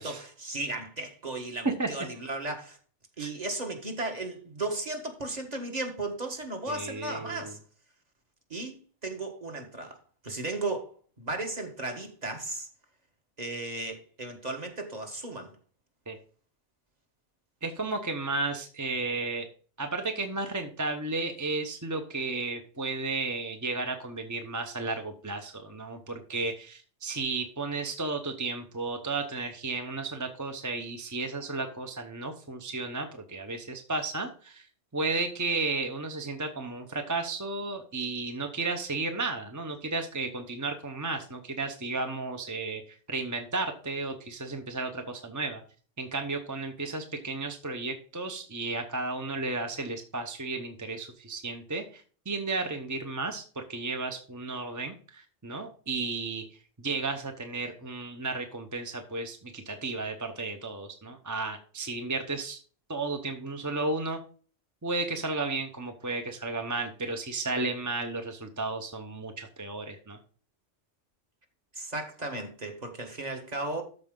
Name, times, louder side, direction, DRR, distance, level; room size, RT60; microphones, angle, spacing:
voice 1, 0.0-2.8 3.2-7.6 8.5-10.0 10.2-10.9 11.2-12.7 13.4-15.5 71.7-73.8, right 2 dB, 35° right, 1.6 m, -35 dB
voice 2, 6.7-7.5 16.1-16.2 17.6-19.5 19.8-34.7 34.9-45.6 46.0-62.6 62.9-64.2 64.8-70.2, right 3 dB, 20° right, 0.7 m, -33 dB
13.0 x 4.8 x 3.8 m
omnidirectional pair, 1.2 m